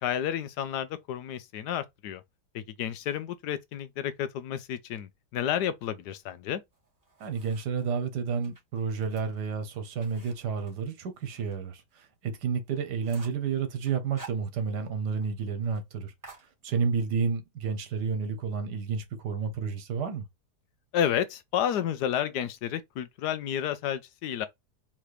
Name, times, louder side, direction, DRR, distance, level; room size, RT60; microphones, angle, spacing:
voice 1, 0.0-2.2 2.5-6.6 20.9-24.5, left 10 dB, 80° left, 1.2 m, -31 dB
sound 1, 6.7-7.9 8.3-11.6 11.9-12.0 12.4-12.5 12.8-13.5 13.9-15.0 15.2-15.3 15.6-15.8 16.2-17.1, right 3 dB, 10° right, 2.5 m, -51 dB
voice 2, 7.2-16.1 16.6-20.2, right 6 dB, 80° right, 1.6 m, -31 dB
4.2 x 3.5 x 3.2 m
omnidirectional pair, 1.7 m